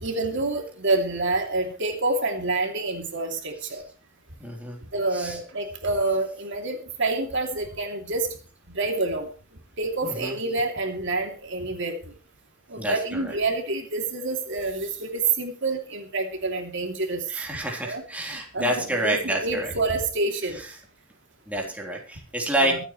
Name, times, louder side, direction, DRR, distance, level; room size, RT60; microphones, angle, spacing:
voice 1, 0.0-3.8 4.9-8.3 8.7-9.3 9.8-12.0 12.7-17.2 17.8-18.0 18.3-20.6 22.6-22.8, right 3 dB, 65° right, 3 dB, 2.8 m, -27 dB
voice 2, 4.4-4.8 5.1-5.4 10.0-10.4 12.8-13.3 17.3-19.7 20.6-20.7 21.5-22.8, right 1 dB, 5° right, -1 dB, 3.7 m, -28 dB
24.5 x 8.9 x 3.2 m, 0.35 s
head